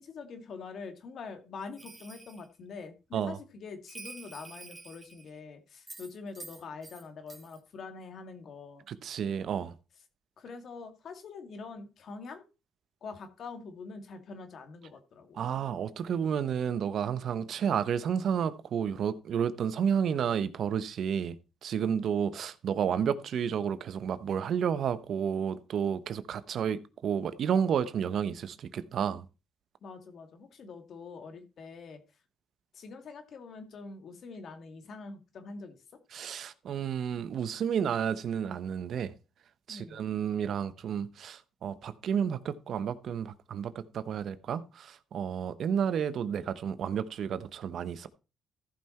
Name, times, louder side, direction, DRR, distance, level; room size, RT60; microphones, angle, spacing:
voice 1, 0.0-8.8 10.4-12.4 13.0-15.4 29.8-32.0 32.7-35.8 39.7-40.0, left 4 dB, 60° left, 2.2 m, -45 dB
Bell, 1.8-2.5 3.9-5.4 5.9-7.0 7.3-7.6, right 3 dB, 25° right, 2.4 m, -48 dB
voice 2, 8.9-9.7 15.4-21.3 21.6-29.2 36.1-39.1 39.7-48.1, right 8 dB, 65° right, 1.0 m, -31 dB
14.5 x 5.7 x 4.5 m
cardioid pair, 90°, 0 cm